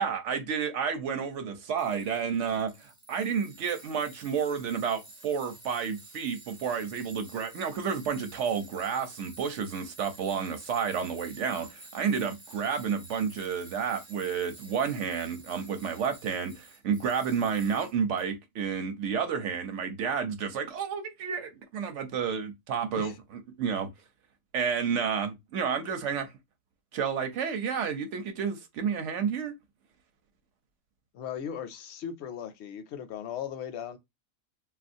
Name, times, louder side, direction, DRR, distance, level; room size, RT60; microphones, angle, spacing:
voice 1, 0.0-23.1 23.6-23.9 24.5-26.3 26.9-29.5, right 6 dB, 65° right, 0.9 m, -30 dB
Tools, 1.8-18.2, right 2 dB, 30° right, 0.7 m, -51 dB
voice 2, 31.1-34.0, left 8 dB, 65° left, 0.7 m, -38 dB
3.3 x 2.4 x 2.5 m
omnidirectional pair, 1.5 m